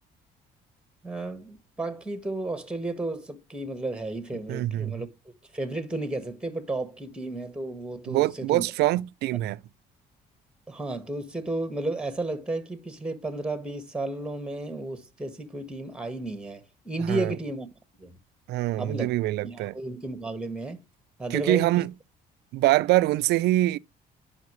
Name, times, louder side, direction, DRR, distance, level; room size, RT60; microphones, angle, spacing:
voice 1, 1.0-5.1 5.5-8.6 10.7-17.7 18.0-18.2 18.8-19.1 19.4-20.8 21.2-21.7, right 2 dB, 5° right, 1.6 m, -33 dB
voice 2, 4.5-5.0 8.1-9.6 17.1-17.3 18.5-19.8 21.3-21.9 22.5-23.8, right 16 dB, 75° right, 0.5 m, -24 dB
10.5 x 5.8 x 3.1 m
cardioid pair, 110°, 17 cm